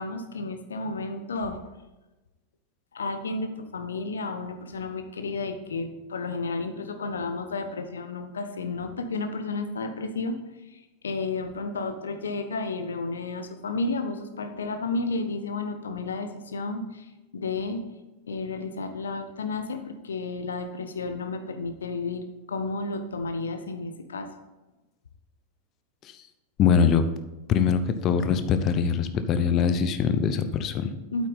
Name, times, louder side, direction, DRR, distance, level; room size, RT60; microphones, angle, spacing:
voice 1, 0.0-1.6 2.9-10.3 10.7-17.1 17.3-17.9 18.3-24.3 31.1-31.3, left 3 dB, 70° left, 8 dB, 1.0 m, -32 dB
voice 2, 26.6-27.1 27.5-30.9, left 7 dB, 35° left, 10 dB, 0.8 m, -23 dB
8.6 x 8.5 x 4.1 m, 1.1 s
figure-of-eight pair, 90°, 0 cm